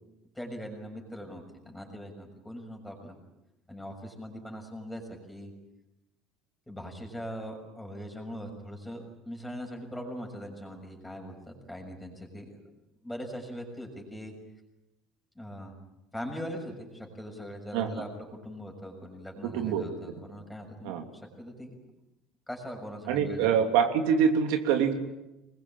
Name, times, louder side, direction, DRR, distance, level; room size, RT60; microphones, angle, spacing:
voice 1, 0.3-3.2 3.7-5.5 6.7-12.7 13.0-14.3 15.3-15.7 16.1-18.1 18.4-21.8 22.5-23.5, equal, 5° left, 2 dB, 6.5 m, -41 dB
voice 2, 19.4-19.8 20.8-21.0 23.1-24.9, right 7 dB, 80° right, 4 dB, 3.0 m, -25 dB
25.0 x 21.5 x 9.0 m, 0.95 s
cardioid pair, 135°, 0 cm